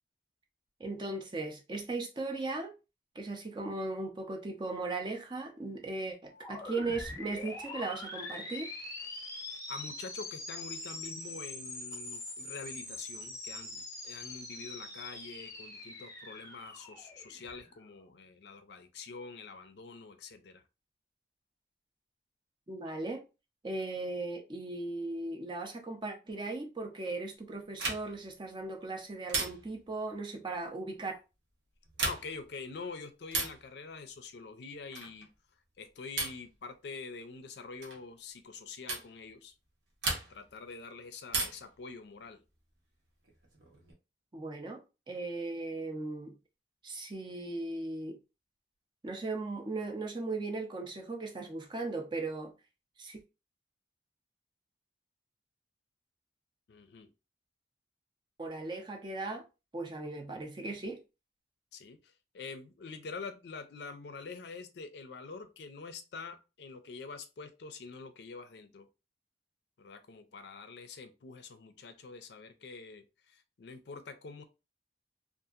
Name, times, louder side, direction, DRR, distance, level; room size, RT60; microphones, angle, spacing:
voice 1, 0.8-2.7 3.1-8.7 22.7-23.3 23.6-31.2 44.3-46.4 46.8-48.2 49.0-52.5 53.0-53.2 58.4-59.4 59.7-61.0, right 3 dB, 25° right, 0.4 m, -37 dB
sound 1, 6.2-17.9, left 2 dB, 15° left, 0.7 m, -43 dB
voice 2, 9.7-20.6 32.0-35.3 35.8-39.5 40.3-42.4 56.7-57.1 61.7-68.9 69.8-74.4, left 4 dB, 70° left, 0.4 m, -46 dB
sound 2, 27.8-28.3 29.3-29.9 31.8-32.5 33.3-33.7 34.9-35.3 36.2-36.5 37.8-38.0 38.9-39.1 40.0-40.6 41.3-41.8 43.2-43.9, right 3 dB, 75° right, 0.8 m, -35 dB
2.7 x 2.4 x 2.4 m
head